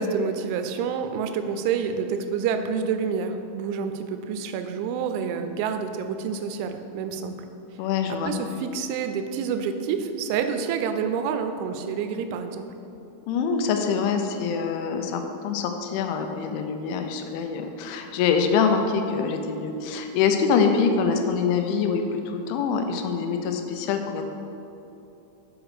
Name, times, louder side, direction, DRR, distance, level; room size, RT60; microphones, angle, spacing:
voice 1, 0.0-7.4 8.2-12.7, right 6 dB, 85° right, 7 dB, 2.9 m, -28 dB
voice 2, 7.8-8.3 13.3-24.2, left 6 dB, 90° left, 5 dB, 3.0 m, -25 dB
8.1 x 4.9 x 4.8 m, 2.9 s
omnidirectional pair, 5.3 m